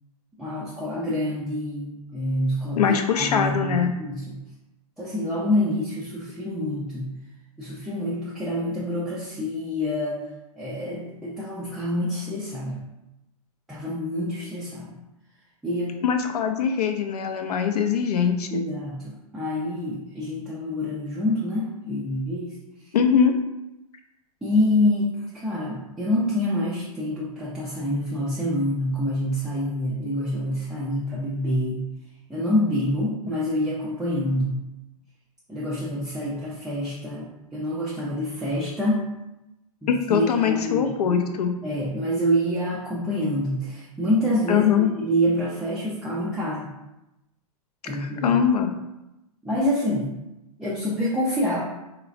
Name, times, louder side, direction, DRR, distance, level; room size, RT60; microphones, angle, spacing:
voice 1, 0.4-4.4 5.0-7.1 7.6-10.2 10.6-12.8 13.7-14.9 15.6-16.0 18.5-22.6 24.4-31.9 32.3-34.6 35.5-39.1 39.8-41.2 41.6-44.7 45.0-46.7 47.8-48.4 49.4-50.2 50.6-51.6, left 1 dB, 5° right, -7 dB, 0.3 m, -27 dB
voice 2, 2.8-3.9 16.0-18.6 22.9-23.3 39.9-41.5 44.5-44.9 48.0-48.7, left 7 dB, 80° left, 6 dB, 0.4 m, -22 dB
3.1 x 2.0 x 2.4 m, 0.93 s
hypercardioid pair, 115°, 20 cm